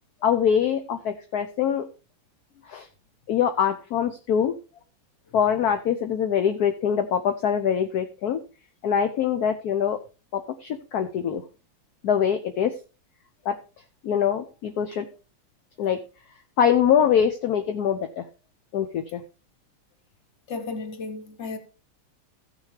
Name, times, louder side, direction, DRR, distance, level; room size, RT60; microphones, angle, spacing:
voice 1, 0.2-1.9 2.7-2.9 3.3-4.6 5.3-8.4 8.8-10.0 10.3-11.4 12.0-12.7 13.4-13.6 14.0-15.0 15.8-16.0 16.6-18.2 18.7-19.2, left 8 dB, 60° left, 1.0 m, -23 dB
voice 2, 20.5-21.6, left 3 dB, 40° left, 1.3 m, -33 dB
15.0 x 6.5 x 3.3 m
omnidirectional pair, 2.4 m